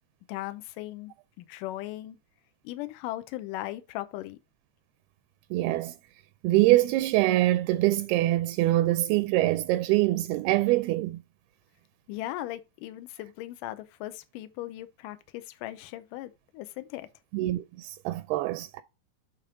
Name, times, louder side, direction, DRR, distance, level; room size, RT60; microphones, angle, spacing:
voice 1, 0.3-2.2 2.6-4.4 12.1-17.1, left 15 dB, 90° left, 1.9 m, -38 dB
voice 2, 5.5-5.9 6.4-11.2 17.3-18.8, right 17 dB, 85° right, 2.4 m, -24 dB
8.6 x 3.5 x 4.9 m
omnidirectional pair, 4.5 m